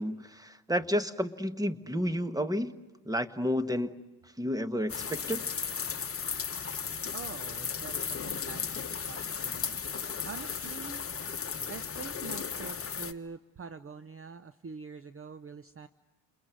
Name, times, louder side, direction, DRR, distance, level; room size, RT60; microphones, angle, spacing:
voice 1, 0.0-2.7 3.0-3.9 4.4-5.4, equal, 10° right, 11 dB, 1.4 m, -31 dB
sound 1, 4.9-13.1, left 6 dB, 30° left, 1.3 m, -35 dB
voice 2, 7.1-9.8 10.2-11.0 11.3-15.9, right 5 dB, 30° right, 12 dB, 0.8 m, -45 dB
29.5 x 22.0 x 9.2 m, 1.1 s
supercardioid pair, 80°, 46 cm